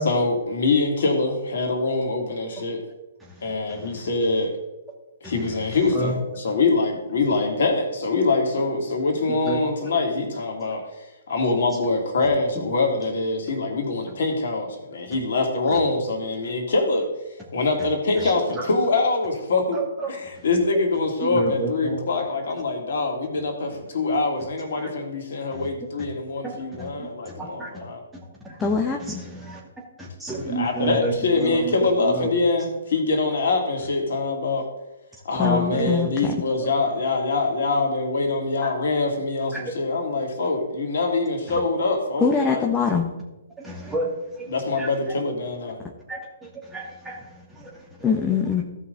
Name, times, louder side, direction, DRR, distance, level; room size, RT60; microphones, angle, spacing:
voice 1, 0.0-2.8 3.4-4.5 5.2-10.8 11.3-17.1 17.5-19.8 20.1-28.0 30.4-34.6 35.2-42.7 44.5-45.8, left 3 dB, 60° left, 1 dB, 2.4 m, -24 dB
voice 2, 3.2-4.1 5.2-5.7 5.9-6.2 9.3-9.6 18.2-18.7 19.7-20.5 21.2-22.0 24.8-24.9 25.5-25.7 26.4-27.7 28.4-28.7 29.0-29.6 30.0-32.3 35.4-36.0 36.6-36.7 38.6-38.7 39.5-39.6 41.5-41.6 43.6-44.9 46.1-48.2, right 3 dB, 10° right, -3 dB, 2.5 m, -32 dB
voice 3, 28.6-29.2 35.4-36.3 42.2-43.1 48.0-48.6, left 6 dB, 15° left, 1 dB, 1.0 m, -23 dB
15.5 x 5.5 x 3.9 m, 1.0 s
figure-of-eight pair, 125°, 0 cm